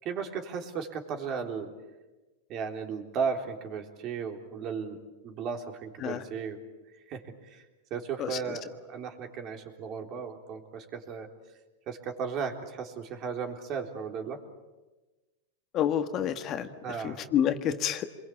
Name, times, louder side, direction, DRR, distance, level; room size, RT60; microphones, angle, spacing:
voice 1, 0.0-1.7 2.5-5.0 5.2-6.6 7.1-7.6 7.9-11.3 11.9-14.4 16.8-17.2, right 6 dB, 40° right, 4 dB, 3.7 m, -35 dB
voice 2, 8.2-8.6 15.7-16.7 17.0-18.1, left 9 dB, 40° left, 8 dB, 1.5 m, -28 dB
27.0 x 22.0 x 8.6 m, 1.2 s
supercardioid pair, 125°, 0 cm